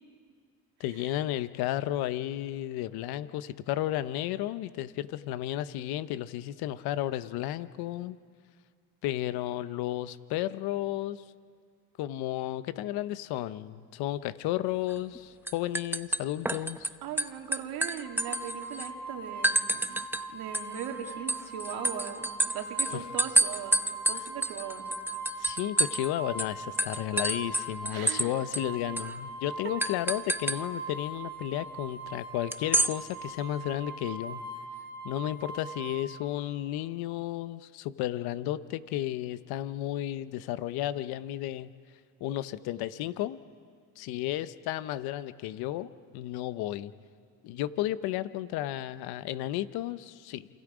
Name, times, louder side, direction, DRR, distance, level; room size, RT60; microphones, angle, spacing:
voice 1, 0.8-8.2 9.0-11.2 12.0-16.9 22.9-23.0 25.4-34.4 35.0-41.7 42.2-43.4 44.0-46.9 47.4-50.5, left 14 dB, 85° left, 15 dB, 0.9 m, -33 dB
sound 1, 14.9-15.2 15.5-16.9 17.2-18.9 19.4-20.2 20.5-26.1 26.4-26.5 26.8-28.3 28.5-28.6 29.0-29.1 29.8-30.6 32.5-32.9, right 1 dB, 5° right, 0.9 m, -28 dB
voice 2, 17.0-20.0 20.3-22.3 22.5-23.8 24.1-24.9 27.9-28.3, right 9 dB, 85° right, 4 dB, 2.4 m, -39 dB
sound 2, 18.0-36.0, right 2 dB, 65° left, 7.4 m, -41 dB
28.5 x 27.0 x 5.1 m, 2.1 s
supercardioid pair, 80°, 37 cm